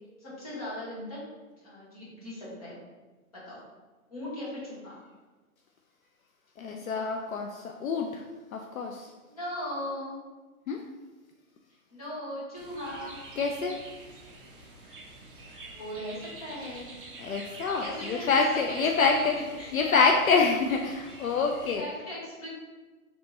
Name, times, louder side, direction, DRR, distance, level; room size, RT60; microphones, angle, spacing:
voice 1, 0.2-1.2 1.6-2.8 3.3-3.6 4.1-5.0 9.3-10.2 11.9-13.2 15.7-16.9 17.8-19.3 19.6-20.6 21.8-22.5, left 1 dB, 25° left, -8 dB, 1.1 m, -38 dB
voice 2, 6.6-8.2 8.5-9.1 10.7-10.8 13.4-13.7 17.2-19.3 19.7-21.8, left 4 dB, 65° left, 2 dB, 0.5 m, -26 dB
sound 1, 12.6-21.8, right 2 dB, 40° right, 0.6 m, -47 dB
3.4 x 3.0 x 3.9 m, 1.3 s
hypercardioid pair, 170°, 45 cm